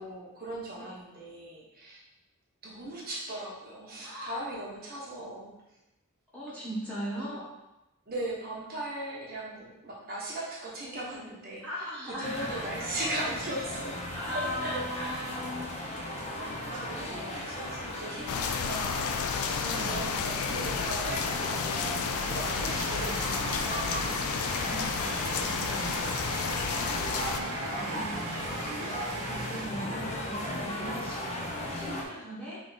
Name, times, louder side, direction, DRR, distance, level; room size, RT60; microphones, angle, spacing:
voice 1, 0.0-2.0 2.6-5.5 7.1-7.4 8.1-14.0 14.3-15.4 16.3-23.9 27.1-27.7, right 1 dB, 45° right, -5 dB, 1.0 m, -39 dB
voice 2, 4.0-4.4 6.3-7.4 11.6-12.5 14.1-15.7 16.5-17.5 19.5-20.0 24.6-26.0 27.4-32.6, equal, 5° left, -9 dB, 1.2 m, -39 dB
sound 1, 12.2-32.0, left 1 dB, 30° left, 0.6 m, -36 dB
sound 2, 18.3-27.4, left 6 dB, 80° left, 0.4 m, -32 dB
sound 3, 22.3-30.2, right 5 dB, 90° right, 0.4 m, -41 dB
3.4 x 3.2 x 3.9 m, 0.93 s
head